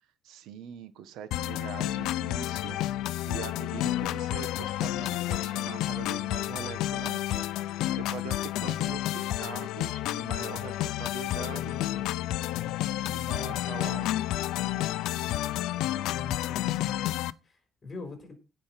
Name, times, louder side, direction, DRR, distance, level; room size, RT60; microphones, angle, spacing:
voice 1, 0.2-2.8 3.3-11.8 13.1-14.2, right 9 dB, 80° right, 12 dB, 1.4 m, -43 dB
sound 1, 1.3-17.3, left 14 dB, 85° left, 0.6 m, -30 dB
voice 2, 11.3-12.0 15.8-18.3, left 3 dB, 25° left, 6 dB, 4.0 m, -45 dB
16.5 x 5.5 x 5.8 m, 0.31 s
cardioid pair, 160°, 0 cm